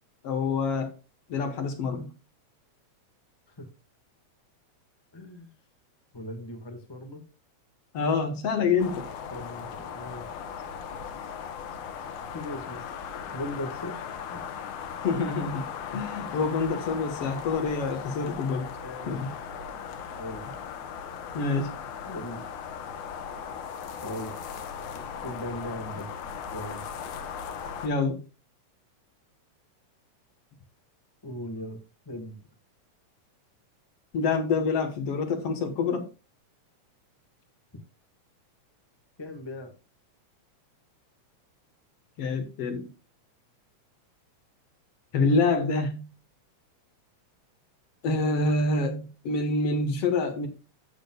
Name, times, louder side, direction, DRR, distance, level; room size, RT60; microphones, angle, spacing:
voice 1, 0.2-0.9 1.3-2.1 7.9-9.1 15.0-15.6 15.9-18.7 19.1-19.3 21.3-21.7 27.8-28.2 34.1-36.1 42.2-42.9 45.1-46.1 48.0-50.5, left 4 dB, 60° left, 2.1 m, -26 dB
voice 2, 5.1-5.5 6.1-7.2 9.2-10.3 10.9-11.0 12.3-14.4 18.8-19.3 20.1-20.5 22.0-22.5 24.0-24.4 24.9-26.1 26.5-26.9 31.2-32.4 39.2-39.7, left 1 dB, 20° left, 0.6 m, -39 dB
sound 1, 8.8-27.9, left 7 dB, 85° left, 2.5 m, -38 dB
15.0 x 6.2 x 2.3 m
omnidirectional pair, 3.4 m